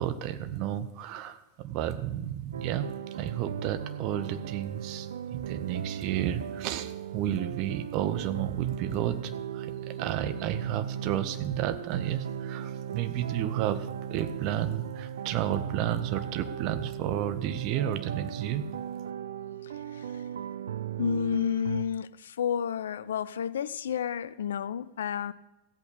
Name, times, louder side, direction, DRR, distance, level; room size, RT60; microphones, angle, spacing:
voice 1, 0.0-18.7, right 11 dB, 40° right, 11 dB, 0.8 m, -32 dB
sound 1, 2.5-21.9, right 9 dB, 65° right, 0.5 m, -37 dB
voice 2, 19.6-20.2 21.0-25.3, left 8 dB, 65° left, 17 dB, 0.4 m, -31 dB
15.0 x 8.3 x 5.0 m, 1.0 s
figure-of-eight pair, 90°, 0 cm